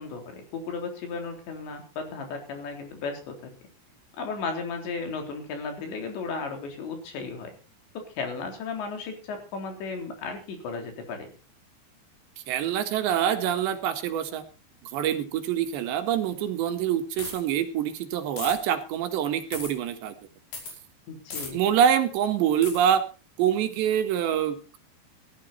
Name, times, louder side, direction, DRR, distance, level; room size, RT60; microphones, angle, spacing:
voice 1, 0.0-3.5 4.2-7.5 8.0-11.3 21.1-21.6, left 4 dB, 85° left, 4 dB, 5.9 m, -35 dB
voice 2, 12.5-14.4 14.9-20.2 21.5-23.0 23.4-24.8, right 9 dB, 85° right, 7 dB, 3.9 m, -25 dB
sound 1, 17.2-17.5 18.4-18.6 19.5-19.7 20.5-20.7 21.3-21.5 22.6-22.8, left 4 dB, 60° left, 7.2 m, -36 dB
17.5 x 13.0 x 4.2 m, 0.33 s
omnidirectional pair, 4.9 m